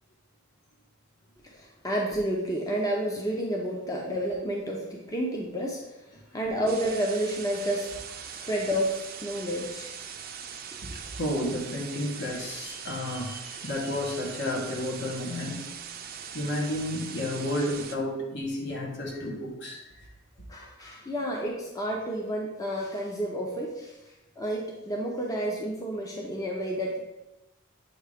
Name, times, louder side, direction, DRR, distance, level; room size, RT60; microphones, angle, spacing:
voice 1, 1.5-5.8 6.3-7.9 8.5-9.9 10.9-11.0 20.5-24.0 24.4-27.0, right 1 dB, 20° left, -2 dB, 0.7 m, -30 dB
sound 1, 6.7-18.0, right 7 dB, 50° right, 0.5 m, -41 dB
voice 2, 10.8-15.6 16.3-19.8, left 1 dB, 60° left, -2 dB, 1.5 m, -32 dB
8.0 x 2.8 x 5.0 m, 0.99 s
head